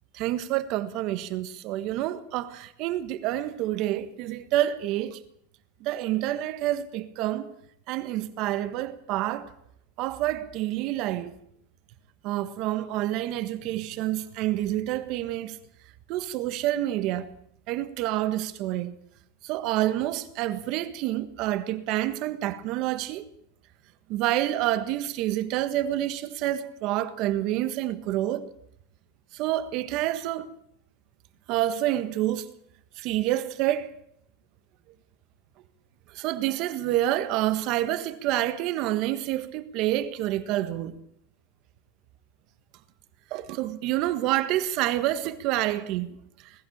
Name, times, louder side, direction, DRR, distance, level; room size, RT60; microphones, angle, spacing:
voice 1, 0.1-5.2 5.8-7.5 7.9-9.5 10.0-11.4 12.2-15.6 16.1-17.3 17.7-18.9 19.4-23.3 24.1-28.5 29.3-30.5 31.5-32.5 33.0-33.9 36.1-40.9 43.3-46.2, right 14 dB, 45° right, 1.5 m, -28 dB
20.5 x 14.5 x 8.7 m
supercardioid pair, 160°, 0 cm